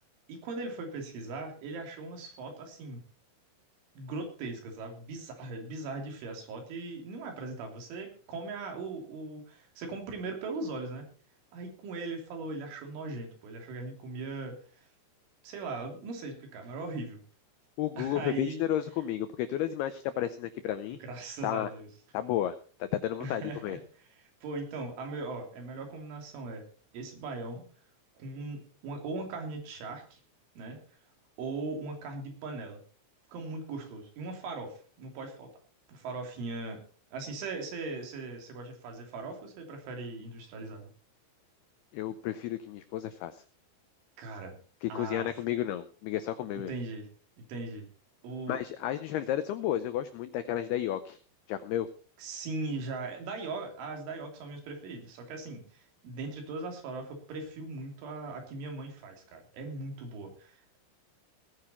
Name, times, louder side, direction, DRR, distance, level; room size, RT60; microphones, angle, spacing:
voice 1, 0.3-3.0 4.0-11.1 11.5-14.6 15.4-17.2 18.0-18.6 20.9-21.9 23.2-26.6 26.9-27.7 28.2-30.2 30.6-30.8 31.4-32.8 33.3-35.5 35.9-36.8 37.1-40.9 44.2-44.6 44.9-45.3 46.7-47.1 47.4-47.9 48.2-48.6 52.2-60.8, right 3 dB, 75° right, 3 dB, 5.4 m, -39 dB
voice 2, 17.8-21.0 21.4-21.7 22.1-23.8 41.9-43.4 44.8-46.7 48.5-51.2 51.5-51.9, left 11 dB, 90° left, 11 dB, 2.2 m, -32 dB
18.5 x 9.9 x 4.3 m, 0.40 s
omnidirectional pair, 5.6 m